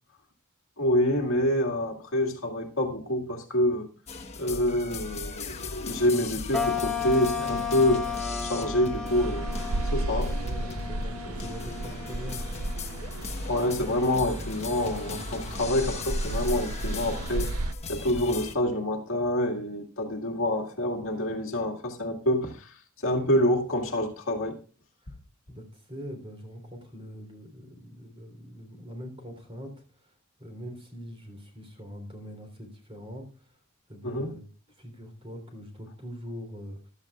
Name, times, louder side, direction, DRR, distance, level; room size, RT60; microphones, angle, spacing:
voice 1, 0.8-3.9 4.4-8.1 8.4-9.6 9.9-10.4 13.4-17.6 17.9-24.6 34.0-34.3, left 1 dB, 65° left, 2.1 m, -27 dB
sound 1, 4.1-18.6, left 3 dB, 30° left, 1.2 m, -38 dB
sound 2, 6.5-13.2, left 6 dB, 5° left, 1.4 m, -34 dB
sound 3, 9.1-17.7, right 1 dB, 75° right, 0.6 m, -33 dB
voice 2, 10.4-12.4 25.0-25.1 25.5-29.7 30.0-30.1 30.4-33.3 33.9-34.4 34.8-36.9, equal, 25° right, 3.6 m, -42 dB
15.5 x 12.5 x 2.4 m
head